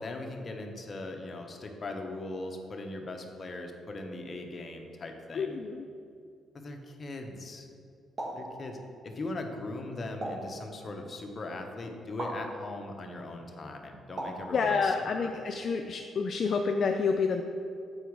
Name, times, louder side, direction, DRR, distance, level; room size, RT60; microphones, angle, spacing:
voice 1, 0.0-5.6 6.5-7.7 8.3-15.3, left 2 dB, 35° left, 3 dB, 0.9 m, -39 dB
voice 2, 5.3-5.8 14.5-17.4, left 5 dB, 55° left, 4 dB, 0.4 m, -28 dB
sound 1, 8.2-8.5 10.2-10.5 12.2-12.4 14.2-14.5, right 1 dB, 40° right, 1.8 m, -36 dB
8.0 x 4.6 x 4.7 m, 2.5 s
cardioid pair, 90°, 0 cm